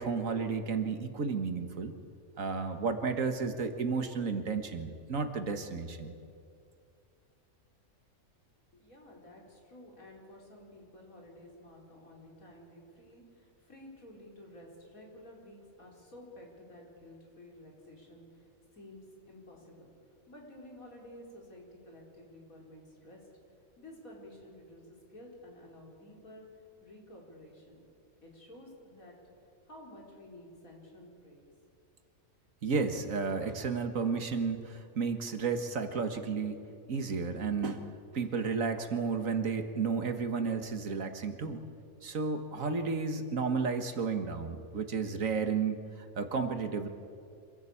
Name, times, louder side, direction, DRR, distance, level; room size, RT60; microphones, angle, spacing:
voice 1, 0.0-1.9 2.4-6.1 32.6-36.6 36.9-37.9 38.1-41.6 42.0-46.9, right 5 dB, 70° right, 7 dB, 1.9 m, -32 dB
voice 2, 8.7-19.9 20.3-23.2 23.8-26.4 26.8-27.9 28.2-29.2 29.6-31.5, left 1 dB, 75° left, -2 dB, 4.9 m, -52 dB
26.0 x 15.5 x 8.5 m, 2.4 s
omnidirectional pair, 1.5 m